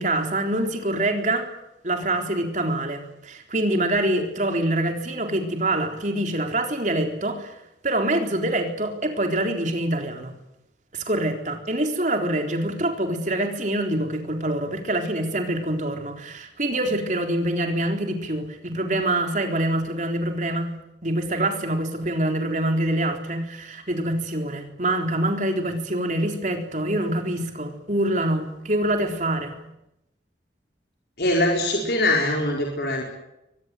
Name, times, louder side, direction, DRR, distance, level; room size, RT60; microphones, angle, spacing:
voice 1, 0.0-1.5 1.8-7.6 7.8-10.4 10.9-20.7 21.0-29.6, right 1 dB, 45° right, 4 dB, 3.9 m, -25 dB
voice 2, 31.2-33.0, left 1 dB, 60° left, 0 dB, 4.8 m, -22 dB
23.5 x 20.5 x 9.2 m, 0.87 s
head